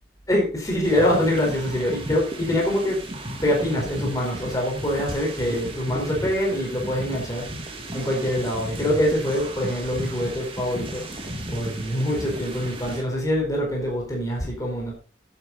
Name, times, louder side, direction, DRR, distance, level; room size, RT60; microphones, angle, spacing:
voice 1, 0.3-3.0 3.4-7.5 7.9-11.1 11.5-14.9, equal, 20° left, -2 dB, 4.6 m, -24 dB
sound 1, 0.8-13.0, right 1 dB, 30° right, 2.4 m, -35 dB
11.0 x 9.7 x 4.2 m, 0.36 s
head